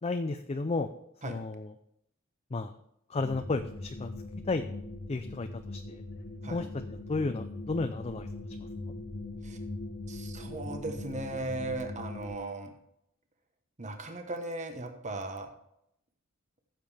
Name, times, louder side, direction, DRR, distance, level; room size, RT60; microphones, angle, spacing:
voice 1, 0.0-0.9 1.2-1.7 2.5-2.7 3.1-4.1 4.5-4.6 5.1-6.0 6.5-8.3 8.6-8.7, left 3 dB, 30° left, 7 dB, 0.5 m, -33 dB
sound 1, 3.2-12.4, left 2 dB, 60° left, 1.1 m, -41 dB
voice 2, 10.1-12.7 13.8-15.5, right 2 dB, 35° right, 5 dB, 1.2 m, -37 dB
14.5 x 7.4 x 3.5 m, 0.76 s
head